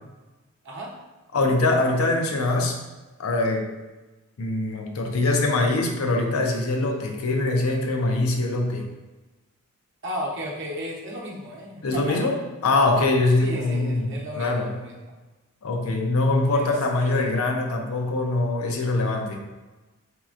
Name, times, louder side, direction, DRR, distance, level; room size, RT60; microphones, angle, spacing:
voice 1, 1.3-2.8 3.2-3.7 4.4-8.9 11.8-12.4 12.6-14.7 15.6-19.4, left 2 dB, 90° left, 2 dB, 0.6 m, -23 dB
voice 2, 10.0-12.3 13.4-15.1 16.5-17.4, equal, 55° right, -2 dB, 0.7 m, -35 dB
4.0 x 2.9 x 2.4 m, 1.2 s
head